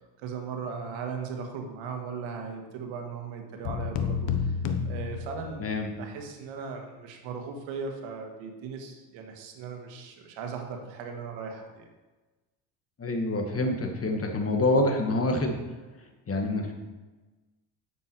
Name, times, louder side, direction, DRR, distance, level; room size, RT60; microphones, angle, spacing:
voice 1, 0.2-4.5 4.8-5.7 6.0-11.9, right 5 dB, 85° right, 3 dB, 1.8 m, -38 dB
sound 1, 3.6-5.9, left 6 dB, 75° left, 1.2 m, -30 dB
voice 2, 13.0-15.6 16.3-16.7, left 2 dB, 30° left, 3 dB, 1.8 m, -26 dB
9.6 x 7.2 x 4.6 m, 1.2 s
cardioid pair, 85°, 45 cm